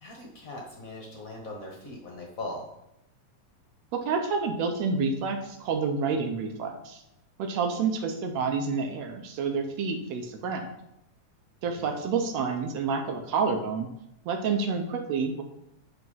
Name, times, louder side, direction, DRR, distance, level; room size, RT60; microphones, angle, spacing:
voice 1, 0.0-2.7 11.8-12.0, left 2 dB, 55° left, -1 dB, 0.9 m, -40 dB
voice 2, 3.9-7.0 7.4-10.7 11.6-13.9 14.3-15.4, right 5 dB, 70° right, 4 dB, 1.8 m, -29 dB
9.1 x 3.4 x 5.5 m, 0.82 s
omnidirectional pair, 3.4 m